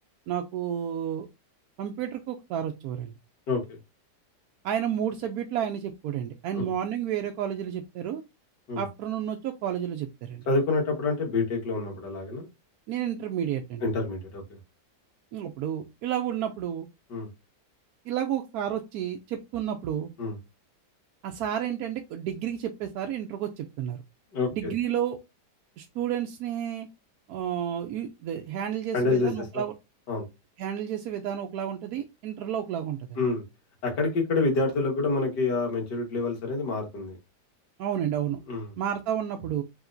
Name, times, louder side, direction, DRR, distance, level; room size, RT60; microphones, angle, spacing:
voice 1, 0.3-1.3 1.8-3.1 4.6-8.2 8.8-10.4 12.9-13.8 15.3-16.9 18.1-20.1 21.2-24.0 24.5-25.2 25.8-26.9 27.3-29.7 30.6-33.2 37.8-38.4 38.8-39.6, right 10 dB, 70° right, 3 dB, 1.0 m, -31 dB
voice 2, 3.5-3.8 6.5-6.7 8.7-8.8 10.5-12.5 13.8-14.4 17.1-17.3 20.2-20.4 24.3-24.7 28.9-29.6 30.1-30.3 33.2-33.4 33.8-37.2 38.5-38.7, left 3 dB, 85° left, 0 dB, 2.1 m, -27 dB
4.8 x 3.6 x 2.6 m, 0.24 s
omnidirectional pair, 1.8 m